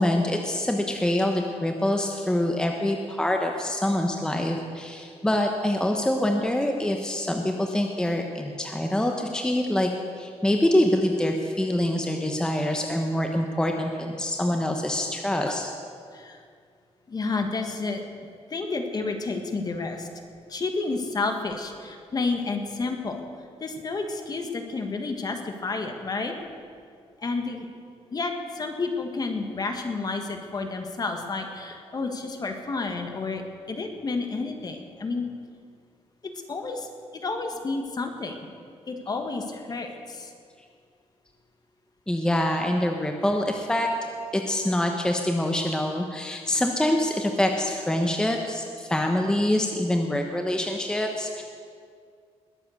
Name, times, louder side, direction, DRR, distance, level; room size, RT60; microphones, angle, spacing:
voice 1, 0.0-9.9 10.2-15.7 42.1-43.9 44.3-51.4, left 1 dB, 5° left, 2 dB, 1.0 m, -25 dB
voice 2, 17.1-18.0 18.5-20.1 20.5-23.2 23.6-26.3 27.2-27.7 28.1-33.4 33.7-35.3 36.2-36.9 37.1-38.5 38.9-40.3, left 3 dB, 35° left, 4 dB, 1.6 m, -30 dB
20.5 x 7.7 x 6.5 m, 2.2 s
cardioid pair, 120°, 11 cm